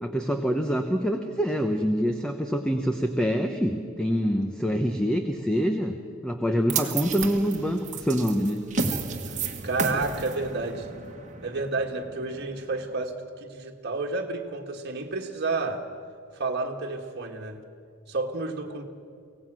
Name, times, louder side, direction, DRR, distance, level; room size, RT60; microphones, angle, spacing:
voice 1, 0.0-5.9 6.2-8.6, equal, 5° left, 5 dB, 0.9 m, -25 dB
sound 1, 6.7-13.0, right 4 dB, 35° right, 1.5 m, -33 dB
voice 2, 9.6-10.9 11.4-13.1 13.4-15.8 16.3-17.6 18.1-18.8, right 3 dB, 50° right, 2 dB, 1.6 m, -30 dB
24.0 x 17.5 x 6.2 m, 2.3 s
head